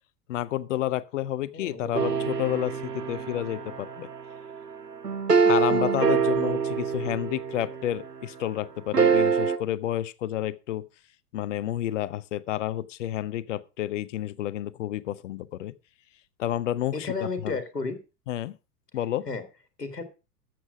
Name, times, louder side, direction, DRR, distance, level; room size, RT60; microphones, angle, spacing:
voice 1, 0.3-4.1 5.4-10.9 11.3-15.7 16.4-17.1 17.4-17.6 18.3-18.6 18.9-19.3, left 12 dB, 50° left, 0.8 m, -30 dB
voice 2, 1.5-2.2 16.9-18.0 19.3-19.4 19.8-20.0, left 4 dB, 85° left, 1.8 m, -33 dB
sound 1, 1.9-8.2 8.9-9.6, right 5 dB, 85° right, 1.3 m, -25 dB
13.5 x 7.7 x 4.8 m
figure-of-eight pair, 95°, 47 cm